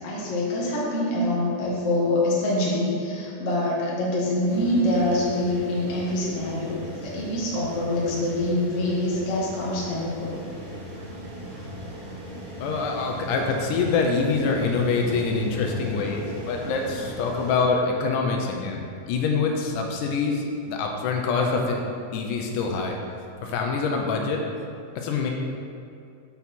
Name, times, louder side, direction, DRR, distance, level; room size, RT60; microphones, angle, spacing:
voice 1, 0.0-10.3, left 1 dB, 45° left, -6 dB, 1.0 m, -25 dB
sound 1, 4.5-17.6, equal, 50° right, 2.3 m, -38 dB
voice 2, 12.6-21.8 22.1-23.0 23.4-24.4 25.0-25.3, left 4 dB, 80° left, 1 dB, 2.2 m, -25 dB
7.0 x 6.2 x 4.2 m, 2.5 s
omnidirectional pair, 3.8 m